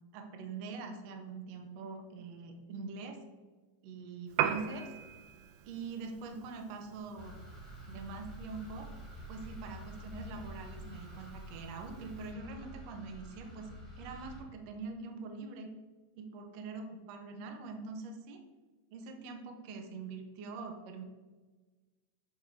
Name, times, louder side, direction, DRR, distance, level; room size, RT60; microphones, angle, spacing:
voice 1, 0.0-3.2 3.8-4.9 5.6-7.4 7.9-8.9 9.3-15.7 16.2-18.4 18.9-21.0, right 4 dB, 70° right, 4 dB, 1.6 m, -44 dB
Piano, 4.3-12.3, right 10 dB, 85° right, 2.3 m, -42 dB
sound 1, 7.2-14.4, equal, 15° left, 1.1 m, -48 dB
11.0 x 3.7 x 4.6 m, 1.3 s
omnidirectional pair, 4.1 m